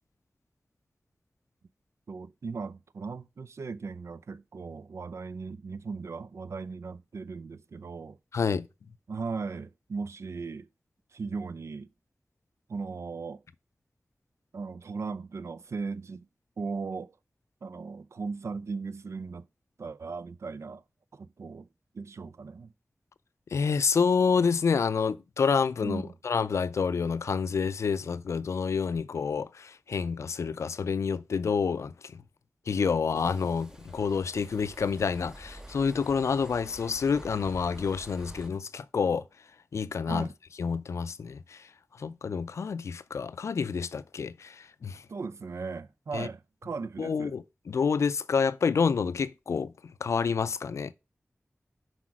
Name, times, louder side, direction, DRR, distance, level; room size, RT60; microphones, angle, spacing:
voice 1, 2.1-8.2 9.1-10.7 11.1-11.9 12.7-13.4 14.5-16.3 16.6-17.1 17.6-19.5 19.8-20.8 21.1-21.7 21.9-22.7 25.8-26.1 40.1-40.3 45.1-47.3, right 4 dB, 80° right, 0.4 m, -37 dB
voice 2, 8.3-8.7 23.5-32.2 32.7-39.2 39.7-40.3 40.6-41.7 42.0-45.0 46.1-46.3 47.0-50.9, left 5 dB, 90° left, 0.4 m, -28 dB
sound 1, 33.1-38.5, right 1 dB, 10° right, 0.7 m, -48 dB
6.0 x 4.9 x 6.1 m
cardioid pair, 45°, 5 cm